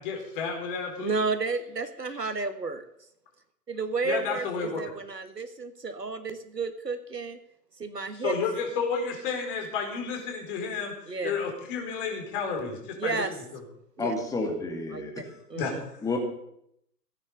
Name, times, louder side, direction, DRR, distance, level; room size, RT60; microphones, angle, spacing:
voice 1, 0.0-1.2 4.0-4.8 8.1-13.2 15.5-16.0, left 5 dB, 35° left, 2 dB, 4.6 m, -31 dB
voice 2, 1.0-2.8 3.7-7.4 7.8-8.4 11.1-11.3 13.0-13.3 14.0-14.1 14.9-15.2 15.5-15.8, right 4 dB, 80° right, 9 dB, 1.7 m, -32 dB
voice 3, 14.0-15.2 16.0-16.2, left 3 dB, 5° left, 2 dB, 2.5 m, -30 dB
17.0 x 9.9 x 6.8 m, 0.74 s
figure-of-eight pair, 120°, 48 cm